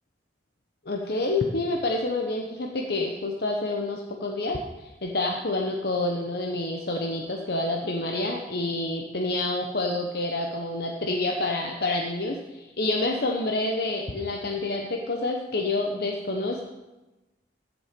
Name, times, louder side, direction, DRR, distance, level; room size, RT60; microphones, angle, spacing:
voice 1, 0.9-16.7, left 2 dB, 60° left, 1 dB, 1.0 m, -28 dB
15.0 x 7.1 x 5.2 m, 1.1 s
head